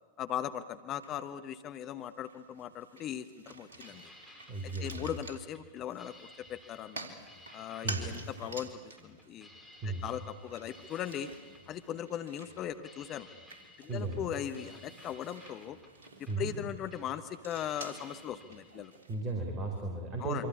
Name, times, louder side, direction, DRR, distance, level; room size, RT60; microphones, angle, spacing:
voice 1, 0.2-4.0 4.8-7.1 7.5-9.5 9.8-11.3 11.7-13.3 13.8-15.8 16.4-18.9 20.2-20.4, left 10 dB, 35° left, 10 dB, 1.2 m, -39 dB
sound 1, 1.0-1.7 2.1-19.2, right 3 dB, 65° right, 3.8 m, -49 dB
sound 2, 3.7-19.0, left 1 dB, 5° right, 6.7 m, -57 dB
voice 2, 4.5-5.2 7.8-8.1 9.8-10.0 13.9-14.2 16.3-16.5 19.1-20.5, right 3 dB, 30° right, 3 dB, 4.6 m, -35 dB
27.0 x 25.5 x 8.6 m, 1.4 s
figure-of-eight pair, 90°, 0 cm